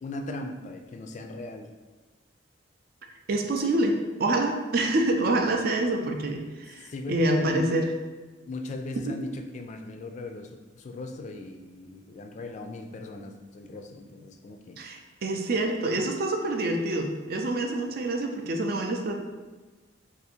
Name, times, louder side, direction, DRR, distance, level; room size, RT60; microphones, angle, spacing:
voice 1, 0.0-1.7 6.8-7.8 8.5-14.8, left 2 dB, 40° left, 5 dB, 0.3 m, -38 dB
voice 2, 3.3-7.8 9.0-9.1 14.8-19.1, right 2 dB, 55° right, 3 dB, 0.4 m, -26 dB
2.7 x 2.6 x 4.1 m, 1.2 s
head